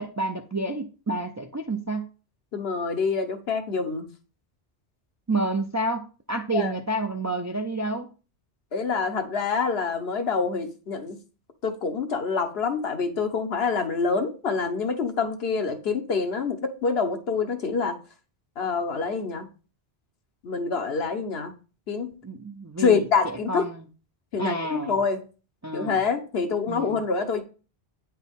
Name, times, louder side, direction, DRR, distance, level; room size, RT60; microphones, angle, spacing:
voice 1, 0.0-2.1 5.3-8.1 22.2-23.9 24.4-25.0 25.6-26.0 26.7-27.0, right 2 dB, 30° right, 0.3 m, -29 dB
voice 2, 2.5-4.1 6.5-6.7 8.7-11.2 11.6-18.0 18.6-19.5 20.4-21.5 21.9-22.1 22.8-23.7 24.3-25.2 25.7-27.4, left 5 dB, 75° left, 1.2 m, -26 dB
9.1 x 4.7 x 3.5 m
omnidirectional pair, 1.1 m